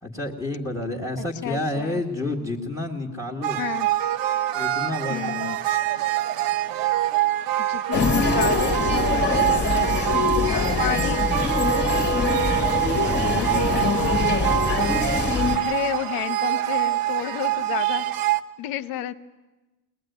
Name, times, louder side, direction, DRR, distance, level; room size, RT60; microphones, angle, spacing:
voice 1, 0.0-3.6 4.5-5.8 10.4-10.8 12.3-15.1, left 2 dB, 5° left, -1 dB, 1.8 m, -31 dB
voice 2, 1.4-2.0 3.6-3.9 5.1-5.6 7.7-10.0 10.8-11.3 13.3-14.0 15.5-18.1 18.6-19.1, left 13 dB, 55° left, 12 dB, 1.0 m, -30 dB
sound 1, 3.4-18.4, right 14 dB, 50° right, 1.0 m, -25 dB
sound 2, 7.9-15.6, left 4 dB, 25° left, 1.9 m, -24 dB
21.5 x 20.5 x 9.3 m, 1.1 s
cardioid pair, 155°, 43 cm